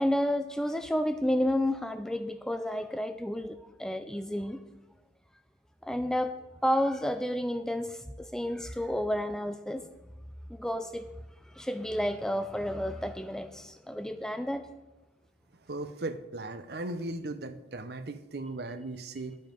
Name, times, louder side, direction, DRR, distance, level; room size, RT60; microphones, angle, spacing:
voice 1, 0.0-4.6 5.8-6.3 6.6-9.9 10.5-11.1 11.5-14.6, equal, 5° left, 9 dB, 0.4 m, -31 dB
voice 2, 15.7-19.4, right 2 dB, 60° right, 10 dB, 0.7 m, -37 dB
11.5 x 7.6 x 5.2 m, 1.1 s
head